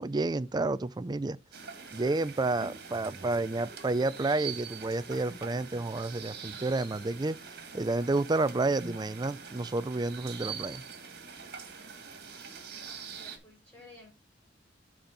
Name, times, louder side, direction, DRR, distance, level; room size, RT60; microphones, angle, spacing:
voice 1, 0.0-1.4 1.9-7.4 7.7-10.8, right 2 dB, 20° right, 0.4 m, -30 dB
sound 1, 1.5-13.4, right 6 dB, 55° right, 2.1 m, -44 dB
voice 2, 12.8-14.1, left 2 dB, 5° left, 5.4 m, -54 dB
12.0 x 4.4 x 3.8 m
head